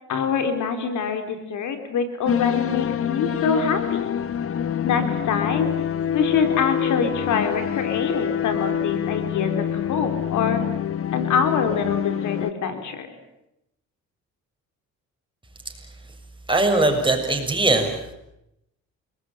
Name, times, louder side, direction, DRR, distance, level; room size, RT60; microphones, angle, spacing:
voice 1, 0.1-4.1 4.8-5.7 6.1-9.5 9.9-10.7 11.1-13.1, left 6 dB, 80° left, 7 dB, 4.2 m, -25 dB
sound 1, 2.3-12.5, left 9 dB, 45° left, 1.1 m, -26 dB
voice 2, 16.5-18.1, right 2 dB, 15° right, 3 dB, 7.0 m, -21 dB
29.5 x 20.5 x 9.3 m, 0.85 s
cardioid pair, 90°, 30 cm